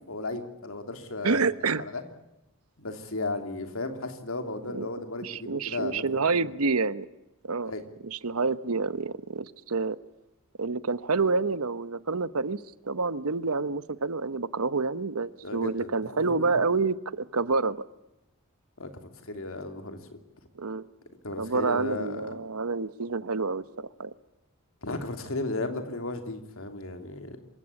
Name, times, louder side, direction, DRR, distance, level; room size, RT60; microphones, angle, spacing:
voice 1, 0.1-1.4 1.8-2.0 2.8-6.0 6.3-6.5 7.7-7.8 15.4-16.5 18.8-18.9 19.2-20.2 21.2-22.3 24.8-27.4, left 2 dB, 65° left, 6 dB, 3.0 m, -35 dB
voice 2, 1.2-1.8 4.7-4.9 5.2-7.1 7.4-7.7 8.1-10.0 10.6-17.8 20.5-20.9 21.4-24.1, right 4 dB, 85° right, 15 dB, 1.0 m, -28 dB
27.0 x 16.0 x 9.8 m, 0.91 s
head